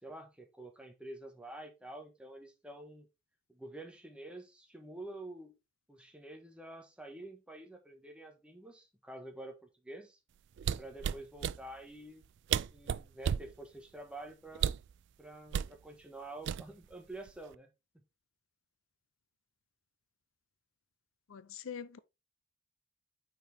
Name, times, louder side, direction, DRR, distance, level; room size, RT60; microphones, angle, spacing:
voice 1, 0.0-3.1 3.5-5.5 5.9-10.2 10.8-12.2 12.5-14.7 15.2-17.7, right 1 dB, 5° right, 1.4 m, -48 dB
sound 1, 10.6-11.6 12.2-12.3 12.5-13.5 14.5-14.9 15.5-15.7 16.5-16.9 17.3-17.5, right 8 dB, 60° right, 0.3 m, -32 dB
voice 2, 21.3-22.0, left 7 dB, 75° left, 0.6 m, -44 dB
8.9 x 4.6 x 3.4 m
head